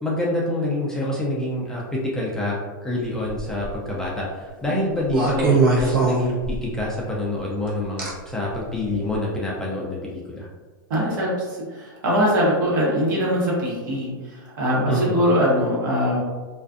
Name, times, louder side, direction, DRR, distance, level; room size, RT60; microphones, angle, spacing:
voice 1, 0.0-10.5 14.9-15.1, left 1 dB, 5° left, -5 dB, 0.4 m, -27 dB
sound 1, 3.3-3.7 5.1-6.9 8.0-8.1 8.9-9.1, right 3 dB, 85° right, 0.8 m, -21 dB
voice 2, 10.9-16.2, equal, 60° right, -5 dB, 1.1 m, -22 dB
2.4 x 2.3 x 2.4 m, 1.3 s
hypercardioid pair, 135°, 11 cm